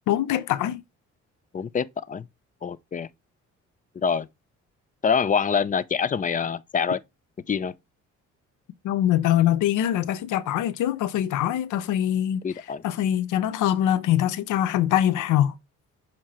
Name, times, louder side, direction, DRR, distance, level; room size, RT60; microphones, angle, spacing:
voice 1, 0.1-0.8 8.8-12.5 12.8-15.5, left 11 dB, 85° left, 0.6 m, -23 dB
voice 2, 1.5-2.2 2.6-3.1 4.0-4.3 5.0-7.0 7.5-7.7 12.4-12.8, left 6 dB, 25° left, 0.5 m, -25 dB
7.4 x 2.9 x 4.3 m
cardioid pair, 90°, 30 cm